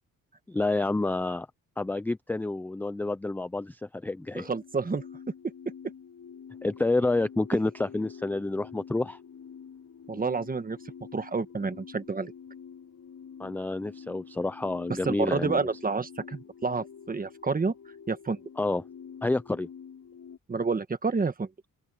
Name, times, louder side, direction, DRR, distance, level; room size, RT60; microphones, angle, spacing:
voice 1, 0.5-1.5 1.8-4.5 6.6-9.2 13.4-15.6 18.6-18.8 19.2-19.7, left 2 dB, 5° left, 0.3 m, -29 dB
sound 1, 4.2-20.4, left 7 dB, 55° left, 7.0 m, -48 dB
voice 2, 4.3-5.0 10.1-10.8 11.1-12.3 15.0-17.7 18.1-18.4 20.5-21.5, right 4 dB, 25° right, 1.4 m, -29 dB
open air
wide cardioid pair, 145°, 34 cm